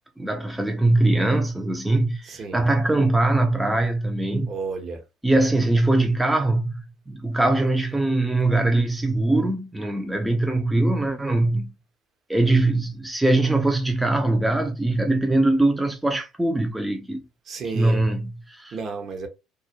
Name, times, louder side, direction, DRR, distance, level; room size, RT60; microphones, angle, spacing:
voice 1, 0.2-4.5 5.2-11.7 12.3-17.2 17.7-18.8, right 2 dB, 10° right, 0.4 m, -22 dB
voice 2, 2.2-2.7 4.5-5.0 17.5-18.1 18.7-19.3, right 4 dB, 50° right, 0.8 m, -32 dB
2.3 x 2.0 x 2.8 m
hypercardioid pair, 70°, 0 cm